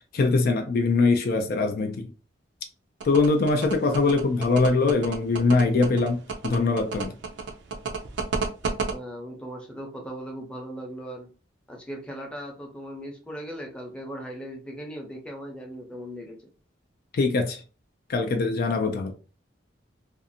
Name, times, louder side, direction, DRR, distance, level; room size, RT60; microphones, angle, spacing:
voice 1, 0.1-2.1 3.0-7.1 17.1-17.6 18.1-19.1, left 3 dB, 55° left, 0.4 m, -22 dB
sound 1, 3.0-8.9, right 5 dB, 65° right, 0.5 m, -30 dB
voice 2, 8.9-11.3 11.7-16.4, equal, 5° left, 0.6 m, -38 dB
2.5 x 2.4 x 2.6 m
head